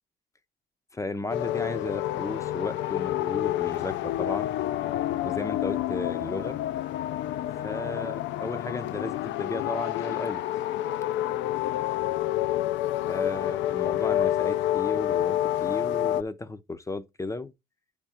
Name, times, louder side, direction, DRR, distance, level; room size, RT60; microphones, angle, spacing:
voice 1, 0.9-4.5 5.2-6.6 7.6-10.4 13.1-17.5, left 2 dB, 15° left, 0.6 m, -34 dB
sound 1, 1.3-16.2, left 13 dB, 75° left, 0.5 m, -28 dB
9.9 x 3.7 x 4.2 m
cardioid pair, 110°, 19 cm